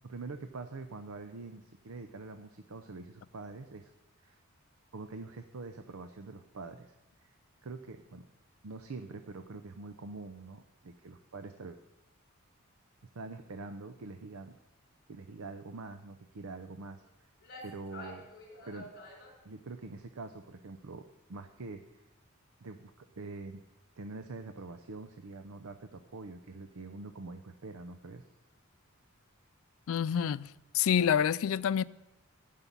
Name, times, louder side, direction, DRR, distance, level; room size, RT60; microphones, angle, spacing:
voice 1, 0.0-3.9 4.2-4.4 4.9-7.0 7.2-7.3 7.6-8.3 8.6-11.8 13.1-14.6 15.1-17.3 17.6-18.3 18.6-18.9 19.4-21.0 21.3-22.0 22.6-23.6 24.0-28.2, right 3 dB, 75° right, 0.6 m, -45 dB
sound 1, 17.0-17.1 17.4-19.4, left 1 dB, 50° left, 3.6 m, -48 dB
voice 2, 29.9-31.8, left 8 dB, 65° left, 0.3 m, -28 dB
11.0 x 5.7 x 8.3 m
head